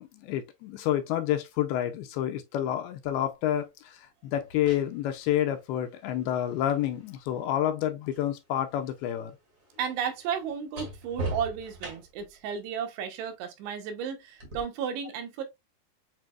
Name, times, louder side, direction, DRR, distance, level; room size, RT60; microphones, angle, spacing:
voice 1, 0.0-9.3, left 11 dB, 80° left, 2.3 m, -29 dB
sound 1, 3.0-3.2 4.3-8.3 8.6-12.3 14.4-14.6, right 2 dB, 45° right, 1.0 m, -42 dB
voice 2, 9.8-15.4, right 7 dB, 90° right, 3.1 m, -33 dB
7.4 x 2.8 x 2.3 m
omnidirectional pair, 4.7 m